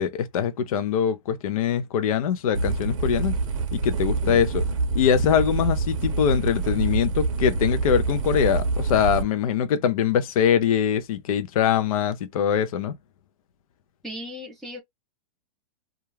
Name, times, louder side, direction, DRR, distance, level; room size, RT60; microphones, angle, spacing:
voice 1, 0.0-3.4 3.7-4.6 4.9-12.9, left 8 dB, 65° left, 0.5 m, -23 dB
sound 1, 2.5-9.2, right 3 dB, 55° right, 0.6 m, -26 dB
voice 2, 14.0-14.8, left 1 dB, ahead, 0.4 m, -36 dB
2.3 x 2.2 x 3.1 m
supercardioid pair, 165°, 20 cm